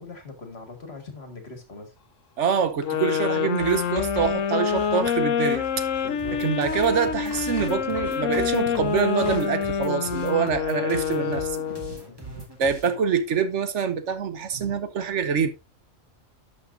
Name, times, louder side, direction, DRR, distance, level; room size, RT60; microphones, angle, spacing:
voice 1, 0.0-2.0 6.0-6.4 11.7-11.8 12.1-12.4, left 4 dB, 55° left, 2.1 m, -41 dB
voice 2, 2.4-5.8 6.4-11.7 12.6-15.5, right 6 dB, 70° right, 1.2 m, -25 dB
sound 1, 2.8-12.0, left 8 dB, 80° left, 1.2 m, -26 dB
Writing, 3.6-5.3 5.5-6.1 6.7-9.5, right 2 dB, 25° left, 5.5 m, -40 dB
sound 2, 6.2-13.0, right 3 dB, 20° right, 2.0 m, -42 dB
11.5 x 6.3 x 2.6 m
omnidirectional pair, 1.3 m